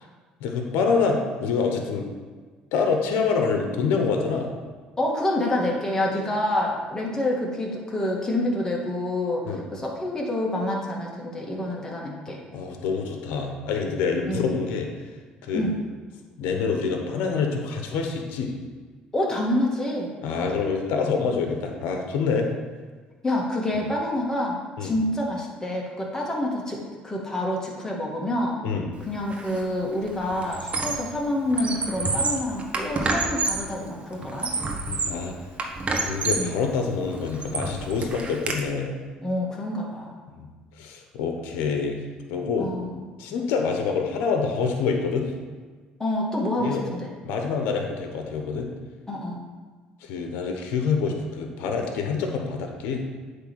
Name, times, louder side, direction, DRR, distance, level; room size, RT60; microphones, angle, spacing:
voice 1, 0.4-2.1 2.7-4.5 9.4-9.6 12.5-14.9 15.4-15.7 16.4-18.5 20.2-22.5 24.8-25.0 28.6-28.9 34.9-35.3 36.0-38.9 40.3-40.5 40.8-42.0 42.3-42.7 43.2-45.3 46.6-46.8 47.2-48.7 50.0-53.0, left 5 dB, 80° left, 3 dB, 1.1 m, -26 dB
voice 2, 5.0-12.4 14.3-14.6 15.5-15.7 19.1-20.1 23.2-28.6 29.0-34.5 36.3-36.6 39.2-40.2 42.6-43.1 46.0-47.1 49.1-49.4, left 1 dB, 20° left, -2 dB, 2.1 m, -27 dB
Squeak, 29.3-29.6 29.9-31.2 31.5-33.7 34.2-35.2 35.6-36.5 37.0-38.6, right 3 dB, 35° right, 1.2 m, -28 dB
8.2 x 3.5 x 6.1 m, 1.4 s
supercardioid pair, 75°, 3 cm